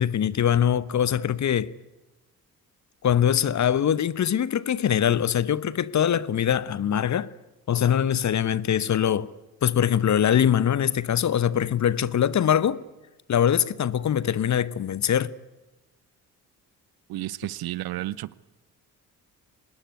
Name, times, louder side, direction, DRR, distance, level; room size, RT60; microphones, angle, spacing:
voice 1, 0.0-1.7 3.0-7.3 7.7-9.3 9.6-12.8 13.3-15.3, left 9 dB, 35° left, 1.1 m, -23 dB
voice 2, 17.1-18.3, right 16 dB, 50° right, 0.9 m, -32 dB
25.5 x 20.5 x 9.7 m
figure-of-eight pair, 45°, 47 cm